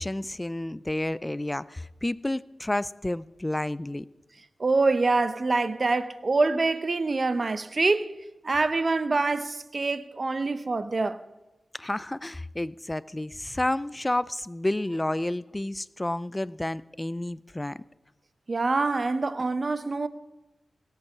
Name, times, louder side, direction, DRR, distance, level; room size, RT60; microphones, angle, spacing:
voice 1, 0.0-4.1 11.7-17.8, left 1 dB, 20° left, 0.5 m, -30 dB
voice 2, 4.6-8.1 8.4-11.2 18.5-20.1, right 3 dB, 50° right, 0.9 m, -25 dB
17.5 x 8.1 x 8.5 m
cardioid pair, 45°, 0 cm